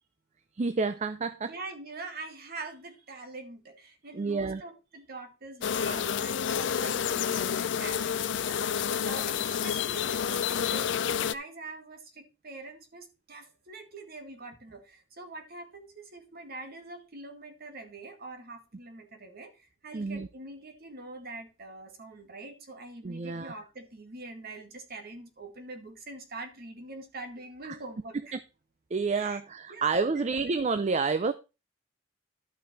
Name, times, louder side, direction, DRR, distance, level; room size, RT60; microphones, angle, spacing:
voice 1, 0.6-1.5 4.1-4.6 19.9-20.3 23.0-23.5 27.6-27.8 28.3-28.4 28.9-31.3, right 4 dB, 40° right, 0.5 m, -29 dB
voice 2, 1.5-28.3 29.1-29.4 29.7-30.3, right 2 dB, 55° right, 1.9 m, -44 dB
sound 1, 5.6-11.3, left 8 dB, 70° left, 0.5 m, -29 dB
12.0 x 6.0 x 4.2 m
head